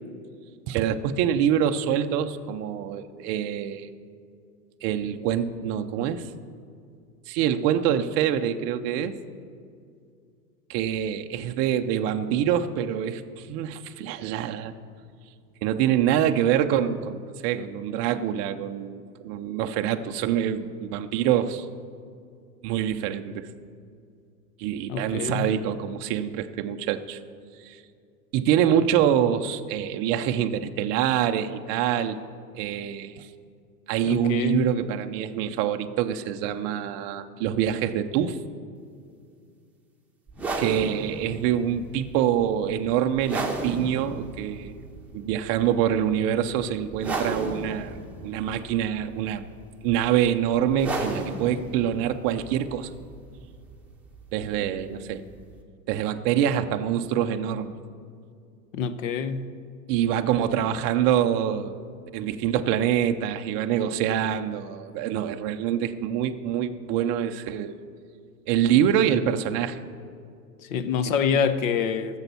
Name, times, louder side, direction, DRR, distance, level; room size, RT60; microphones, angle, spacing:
voice 1, 0.7-3.9 4.8-6.3 7.3-9.2 10.7-14.7 15.6-21.7 22.6-23.5 24.6-27.2 27.6-27.8 28.3-32.2 32.5-33.3 33.9-38.4 40.6-44.7 45.1-49.4 49.8-52.9 54.3-55.2 55.9-57.8 59.9-61.8 62.1-67.8 68.5-69.8 71.0-71.1, right 9 dB, 30° right, 6 dB, 0.5 m, -25 dB
voice 2, 24.9-25.5 34.0-34.7 58.7-59.5 70.7-72.2, left 6 dB, 55° left, 13 dB, 0.9 m, -26 dB
sound 1, 40.3-55.6, right 2 dB, 5° right, 1.1 m, -35 dB
13.5 x 7.1 x 6.8 m, 2.3 s
hypercardioid pair, 110°, 48 cm